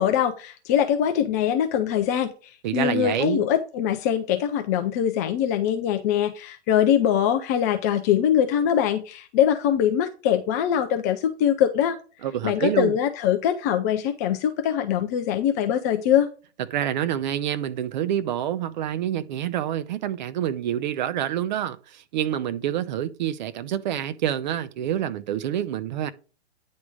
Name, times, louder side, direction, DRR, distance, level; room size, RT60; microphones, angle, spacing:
voice 1, 0.0-12.0 12.4-16.3, left 9 dB, 15° left, 0.3 m, -23 dB
voice 2, 2.6-3.4 12.2-12.9 16.7-26.1, right 10 dB, 45° right, 0.8 m, -27 dB
9.5 x 3.6 x 4.9 m
figure-of-eight pair, 115°, 33 cm